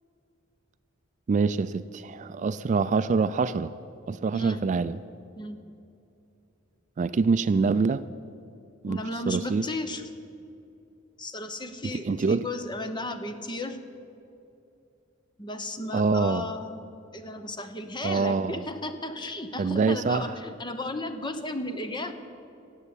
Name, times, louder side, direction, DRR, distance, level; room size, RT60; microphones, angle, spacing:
voice 1, 1.3-3.7 4.1-5.0 7.0-8.0 8.8-9.6 11.9-12.5 15.9-16.5 18.0-18.6 19.6-20.3, right 4 dB, 35° right, 14 dB, 0.3 m, -25 dB
voice 2, 4.3-4.7 5.4-5.6 8.9-10.0 11.2-13.8 15.4-16.9 17.1-22.1, left 2 dB, 25° left, 8 dB, 0.9 m, -34 dB
16.5 x 8.1 x 8.3 m, 2.6 s
head